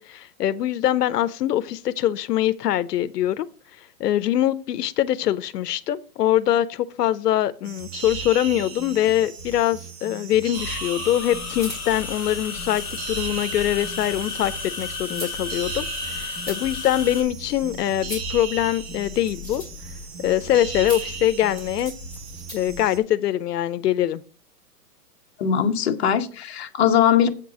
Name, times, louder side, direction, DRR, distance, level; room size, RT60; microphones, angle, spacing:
voice 1, 0.0-3.5 3.8-19.6 20.2-21.9 22.5-24.2, left 12 dB, 85° left, 0.6 m, -23 dB
sound 1, 7.6-23.0, right 5 dB, 40° right, 1.2 m, -37 dB
sound 2, 10.5-17.2, left 4 dB, 5° left, 2.1 m, -33 dB
sound 3, 11.2-22.8, left 2 dB, 15° right, 3.0 m, -40 dB
voice 2, 25.4-27.3, left 9 dB, 40° left, 1.0 m, -20 dB
8.0 x 4.5 x 6.0 m
hypercardioid pair, 175°, 47 cm